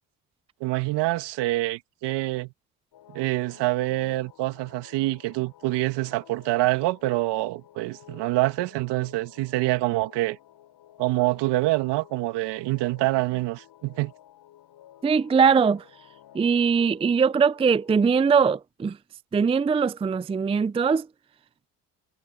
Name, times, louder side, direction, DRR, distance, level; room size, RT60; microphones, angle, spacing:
voice 1, 0.6-2.5 3.1-10.4 11.0-14.1, right 19 dB, 70° right, 2.3 m, -26 dB
sound 1, 2.9-18.2, left 13 dB, 60° left, 7.2 m, -53 dB
voice 2, 15.0-15.8 16.3-19.0 19.3-21.1, right 6 dB, 15° right, 0.5 m, -21 dB
supercardioid pair, 75°, 43 cm